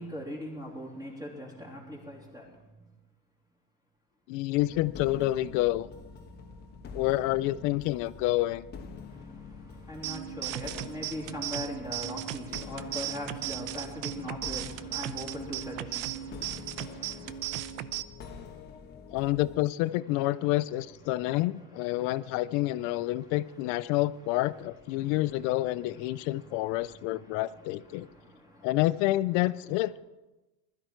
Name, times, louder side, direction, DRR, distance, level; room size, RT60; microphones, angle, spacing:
voice 1, 0.0-2.9 9.1-17.6 21.1-23.5 23.9-24.0 24.9-25.5 26.1-27.4 27.9-28.7, equal, 10° right, 3.3 m, -42 dB
voice 2, 4.3-5.9 6.9-8.7 19.1-28.1 28.6-30.0, left 17 dB, 50° left, 0.5 m, -28 dB
sound 1, 4.5-19.6, left 4 dB, 25° left, 1.3 m, -46 dB
sound 2, 10.0-18.0, right 14 dB, 75° right, 0.8 m, -37 dB
20.5 x 13.0 x 4.6 m
cardioid pair, 165°, 40 cm